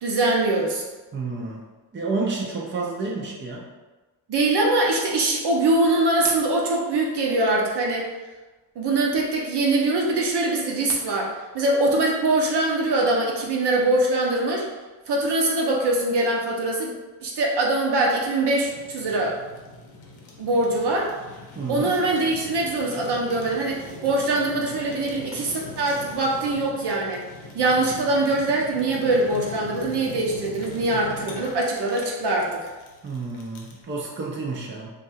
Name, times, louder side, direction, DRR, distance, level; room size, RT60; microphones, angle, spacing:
voice 1, 0.0-0.9 4.3-8.1 8.8-14.7 15.1-16.9 17.2-19.4 20.4-21.1 21.7-27.2 27.5-32.7, right 2 dB, 55° right, -1 dB, 0.9 m, -23 dB
voice 2, 1.1-1.6 1.9-3.6 21.6-21.9 33.0-34.9, right 3 dB, 25° right, -3 dB, 0.6 m, -30 dB
Fire, 18.7-33.8, left 2 dB, 85° left, 0.8 m, -41 dB
2.6 x 2.5 x 4.1 m, 1.2 s
cardioid pair, 90°, 48 cm